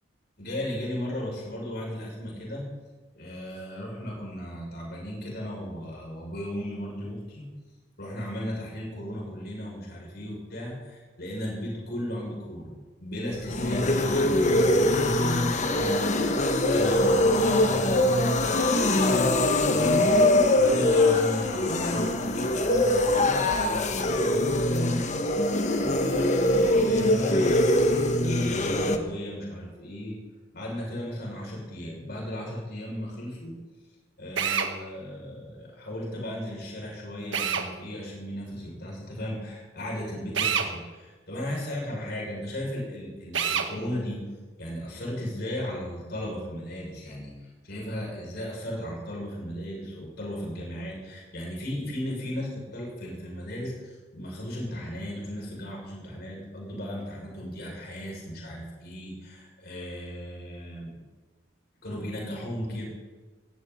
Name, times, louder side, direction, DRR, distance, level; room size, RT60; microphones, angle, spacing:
voice 1, 0.4-2.6 3.1-7.4 8.0-12.7 13.0-16.3 16.7-19.3 19.7-24.9 25.8-30.2 30.5-33.6 34.2-44.3 44.6-61.0 61.8-62.9, equal, 60° left, -3 dB, 6.8 m, -36 dB
sound 1, 13.3-29.0, left 1 dB, 40° left, 1.3 m, -23 dB
Drill, 34.4-34.7 37.3-37.7 40.3-40.7 43.3-43.7, right 7 dB, 80° right, 1.7 m, -26 dB
19.0 x 16.5 x 4.3 m, 1.3 s
head